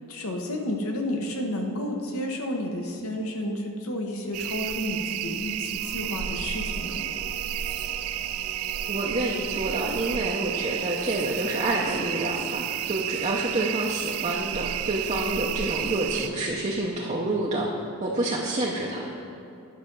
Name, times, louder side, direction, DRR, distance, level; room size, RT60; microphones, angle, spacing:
voice 1, 0.1-7.1, left 1 dB, 65° left, 2 dB, 1.0 m, -31 dB
sound 1, 4.3-16.3, right 11 dB, 70° right, 0.3 m, -31 dB
sound 2, 5.8-11.3, equal, 45° left, 1.7 m, -45 dB
voice 2, 8.9-17.7 18.0-19.1, right 2 dB, 30° right, -3 dB, 0.7 m, -28 dB
10.5 x 5.9 x 5.3 m, 2.7 s
head